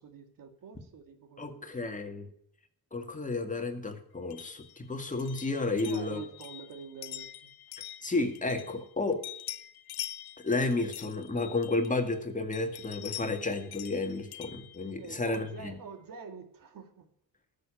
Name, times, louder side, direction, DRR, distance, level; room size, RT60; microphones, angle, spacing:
voice 1, 0.0-1.9 5.7-7.5 15.0-17.1, right 5 dB, 65° right, 2.3 m, -46 dB
voice 2, 1.4-2.3 2.9-6.2 8.0-9.2 10.4-15.8, left 3 dB, 20° left, 1.9 m, -32 dB
sound 1, 4.3-8.9 9.2-12.1 12.5-15.6, left 14 dB, 85° left, 0.8 m, -45 dB
13.5 x 6.9 x 8.9 m
cardioid pair, 110°, 36 cm